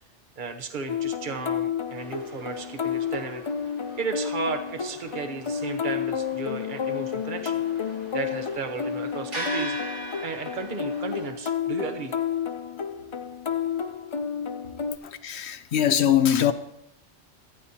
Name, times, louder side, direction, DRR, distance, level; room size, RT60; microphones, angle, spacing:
voice 1, 0.4-3.4 4.0-7.6 8.1-9.8 10.2-12.1, right 4 dB, 45° right, 1.2 m, -34 dB
sound 1, 0.9-15.0, left 7 dB, 45° left, 0.3 m, -31 dB
sound 2, 2.0-11.3, right 1 dB, 80° right, 2.9 m, -41 dB
voice 2, 15.0-16.5, left 10 dB, 70° left, 1.0 m, -22 dB
18.5 x 12.0 x 2.9 m
omnidirectional pair, 1.2 m